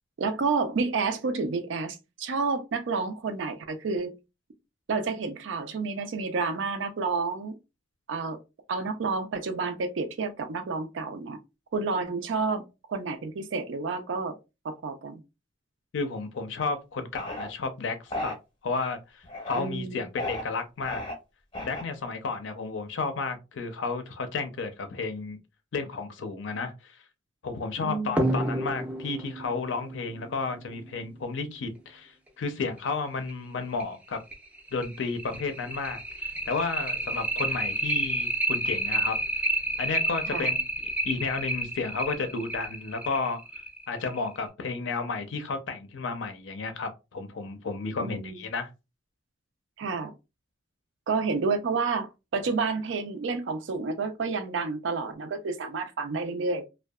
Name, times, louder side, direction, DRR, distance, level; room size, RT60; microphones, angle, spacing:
voice 1, 0.2-4.1 4.9-7.5 8.1-8.4 8.7-11.4 11.7-12.6 12.9-14.4 14.6-15.2 19.5-20.0 27.8-28.3 40.3-40.5 48.0-48.4 49.8-50.1 51.1-56.6, right 4 dB, 70° right, 0.4 m, -30 dB
voice 2, 15.9-18.4 18.6-21.0 21.6-25.4 25.7-27.0 27.4-34.2 34.7-39.2 39.8-40.7 41.0-43.4 43.9-48.7, left 4 dB, 70° left, 0.5 m, -32 dB
sound 1, 17.1-17.5 18.1-18.4 19.2-19.7 20.2-20.4 20.8-21.1 21.5-22.0, left 1 dB, 25° left, 0.7 m, -34 dB
sound 2, 28.2-31.3 32.8-32.9 33.3-33.4 33.8-33.9 34.3-44.4, right 1 dB, 5° right, 0.4 m, -30 dB
2.6 x 2.2 x 2.2 m
head